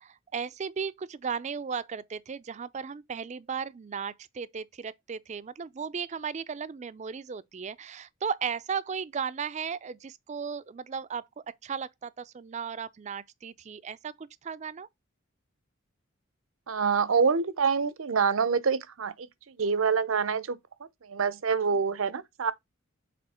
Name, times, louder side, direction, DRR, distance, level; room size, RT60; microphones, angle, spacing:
voice 1, 0.0-14.9, right 6 dB, 35° right, 0.4 m, -36 dB
voice 2, 16.7-19.3 19.6-20.6 21.0-22.5, right 5 dB, 75° right, 0.6 m, -26 dB
6.8 x 4.1 x 4.2 m
head